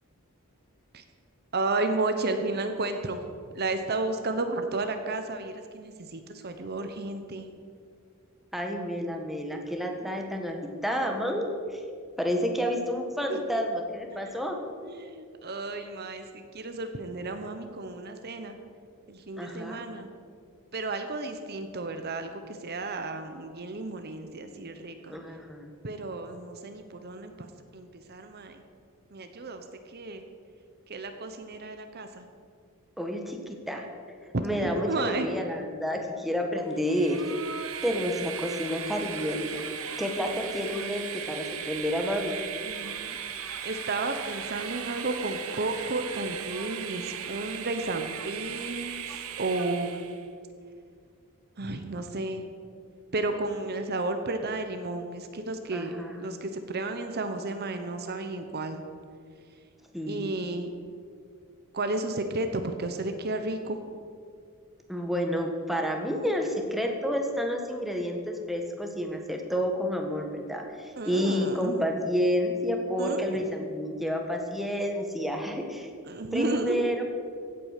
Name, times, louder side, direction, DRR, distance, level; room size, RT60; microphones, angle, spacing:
voice 1, 1.5-3.2 3.5-7.5 13.3-13.6 14.1-14.3 14.8-18.6 19.1-20.1 20.7-25.2 25.8-28.6 29.1-30.2 30.9-32.3 34.3-35.3 42.6-43.4 43.6-50.1 51.6-52.4 53.1-55.9 56.2-58.8 60.1-60.7 61.7-63.8 71.0-71.9 73.0-73.6 76.1-76.8, right 2 dB, 45° right, 7 dB, 0.9 m, -33 dB
voice 2, 8.5-11.8 12.2-14.6 19.4-19.8 25.1-25.7 33.0-33.9 34.4-37.3 37.8-39.6 40.0-42.3 55.7-56.2 59.9-60.2 64.9-75.9 76.3-77.0, equal, ahead, 2 dB, 1.4 m, -30 dB
Train, 36.7-50.2, right 8 dB, 70° right, 1.0 m, -37 dB
16.0 x 8.6 x 6.6 m, 2.2 s
head